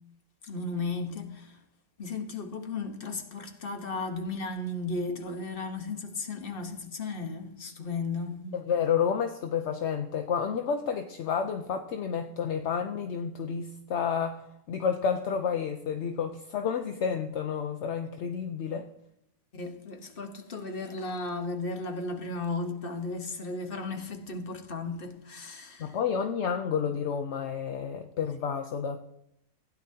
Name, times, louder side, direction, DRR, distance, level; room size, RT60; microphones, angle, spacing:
voice 1, 0.4-1.6 2.0-8.6 19.5-26.0, left 3 dB, 40° left, 1.2 m, -35 dB
voice 2, 8.5-14.4 14.7-18.9 25.8-29.0, left 7 dB, 60° left, 0.8 m, -30 dB
16.0 x 10.0 x 2.8 m
omnidirectional pair, 1.7 m